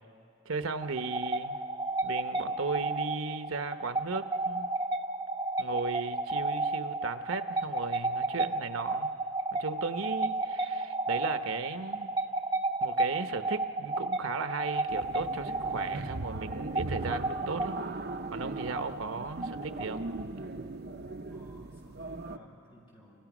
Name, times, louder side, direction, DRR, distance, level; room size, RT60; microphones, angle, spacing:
voice 1, 0.5-1.6 2.0-4.7 5.6-9.1 9.5-12.2 12.8-17.8 18.3-20.0, right 4 dB, 75° right, 9 dB, 0.9 m, -36 dB
sound 1, 0.8-20.2, right 2 dB, 20° right, 1.0 m, -33 dB
sound 2, 14.9-22.4, right 2 dB, 50° right, 0.7 m, -39 dB
voice 2, 21.3-23.2, left 1 dB, 25° left, -4 dB, 7.6 m, -54 dB
28.5 x 28.5 x 6.1 m, 2.5 s
head